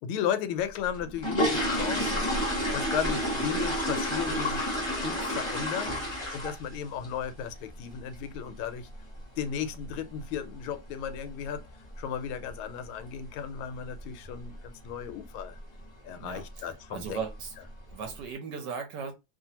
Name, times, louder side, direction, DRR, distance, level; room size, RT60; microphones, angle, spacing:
voice 1, 0.0-4.7 5.0-8.9 9.4-11.6 12.0-15.6 16.0-17.2, left 8 dB, 90° left, 1.4 m, -35 dB
sound 1, 0.9-6.8 7.0-7.3 7.7-7.8 8.1-8.3 8.7-8.9 9.1-9.2 9.8-9.9 10.2-10.3 10.8-11.2 11.4-11.5 11.9-12.1 12.5-12.6 13.0-13.1 13.7-14.0 14.3-14.7 15.0-15.1 15.6-15.7 16.4-16.6 17.0-17.4 17.9-18.0, equal, 35° left, 0.4 m, -30 dB
voice 2, 16.2-17.5 17.9-19.1, right 6 dB, 70° right, 1.1 m, -37 dB
3.0 x 2.4 x 2.7 m
omnidirectional pair, 2.2 m